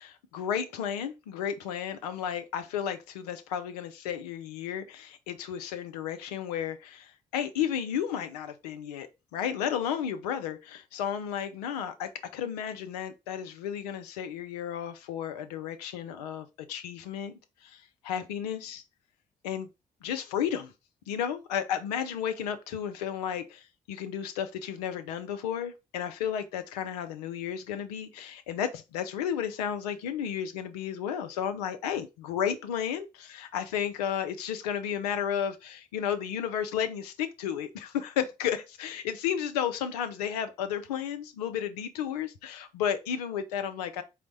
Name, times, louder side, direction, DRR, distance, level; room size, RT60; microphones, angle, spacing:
voice 1, 0.0-17.3 17.6-18.8 19.4-19.7 20.0-20.7 21.1-44.0, left 9 dB, 85° left, 0.5 m, -33 dB
4.4 x 2.1 x 3.9 m
hypercardioid pair, 45°, 20 cm